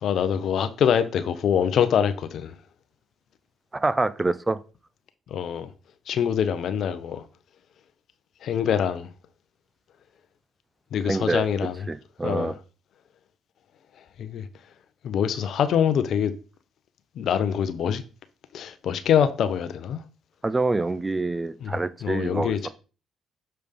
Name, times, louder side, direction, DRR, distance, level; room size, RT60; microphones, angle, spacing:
voice 1, 0.0-2.5 5.3-5.7 6.1-7.2 8.4-9.1 10.9-11.8 12.2-12.5 14.2-14.4 15.0-16.3 17.2-18.0 18.5-20.0 21.6-21.8 22.0-22.7, left 8 dB, 65° left, 0.7 m, -24 dB
voice 2, 3.8-4.6 11.0-11.5 11.9-12.5 20.4-22.7, right 2 dB, 20° right, 0.5 m, -26 dB
6.7 x 3.4 x 5.2 m
hypercardioid pair, 50°, 0 cm